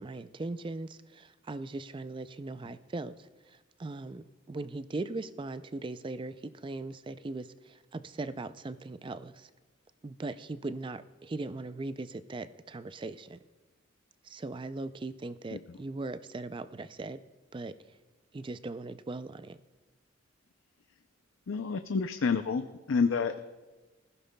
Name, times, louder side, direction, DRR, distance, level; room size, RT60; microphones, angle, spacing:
voice 1, 0.0-9.5 10.0-13.4 14.2-17.2 17.5-17.8 18.3-19.6, right 2 dB, 25° right, 13 dB, 0.3 m, -39 dB
voice 2, 21.5-23.4, left 5 dB, 70° left, 8 dB, 0.5 m, -29 dB
19.0 x 15.5 x 2.2 m, 1.2 s
head